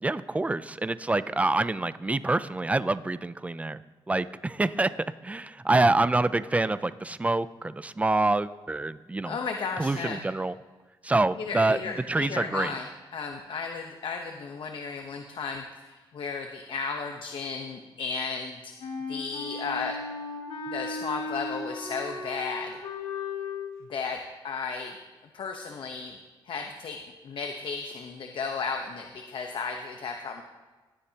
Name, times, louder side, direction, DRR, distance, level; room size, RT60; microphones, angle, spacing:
voice 1, 0.0-3.8 4.1-9.4 9.8-10.5 11.0-11.8 12.1-12.7, right 2 dB, 15° right, 14 dB, 0.4 m, -26 dB
voice 2, 9.2-10.2 11.4-12.9 13.1-18.7 19.1-20.0 20.7-22.7 23.9-25.0 25.3-26.2 26.4-30.4, left 5 dB, 65° left, 4 dB, 1.0 m, -34 dB
Wind instrument woodwind instrument, 18.8-23.7, left 3 dB, 90° left, 2.3 m, -36 dB
18.0 x 10.0 x 2.9 m, 1.3 s
cardioid pair, 100°, 9 cm